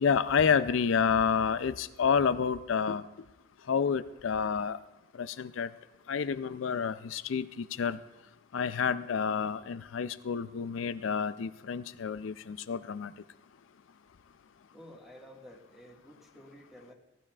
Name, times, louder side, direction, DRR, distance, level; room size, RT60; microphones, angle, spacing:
voice 1, 0.0-3.0 3.7-4.8 5.2-5.7 6.1-8.0 8.5-13.1, left 6 dB, 70° left, 13 dB, 0.4 m, -29 dB
voice 2, 14.7-16.9, equal, ahead, -1 dB, 1.7 m, -52 dB
18.0 x 12.5 x 2.4 m, 1.0 s
head